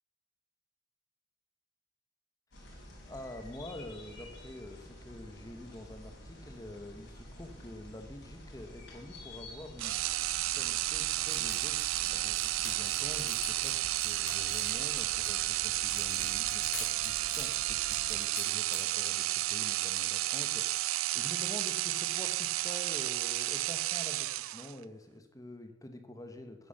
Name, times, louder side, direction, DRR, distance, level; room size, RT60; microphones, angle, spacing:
sound 1, 2.5-18.2, left 1 dB, 60° left, 4.8 m, -50 dB
voice 1, 3.0-26.7, left 1 dB, 15° left, 6 dB, 1.3 m, -47 dB
sound 2, 9.8-24.8, right 17 dB, 85° right, 0.4 m, -32 dB
sound 3, 11.2-15.3 15.8-19.1, left 6 dB, 75° left, 3.2 m, -47 dB
9.8 x 9.7 x 6.6 m, 0.95 s
head